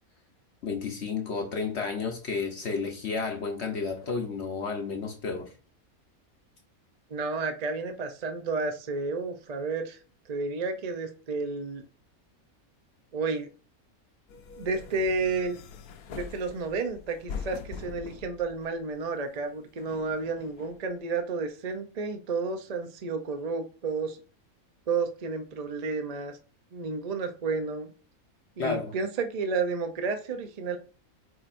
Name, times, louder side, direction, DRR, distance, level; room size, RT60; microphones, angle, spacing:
voice 1, 0.6-5.5 28.6-28.9, left 4 dB, 55° left, 1.0 m, -31 dB
voice 2, 7.1-10.0 10.3-11.8 13.1-13.5 14.6-15.6 16.1-24.2 24.9-26.4 26.7-27.9 28.6-30.8, right 4 dB, 45° right, 0.5 m, -31 dB
sound 1, 14.3-19.2 19.8-20.9, left 5 dB, 80° left, 1.2 m, -43 dB
8.5 x 4.6 x 2.6 m
omnidirectional pair, 1.5 m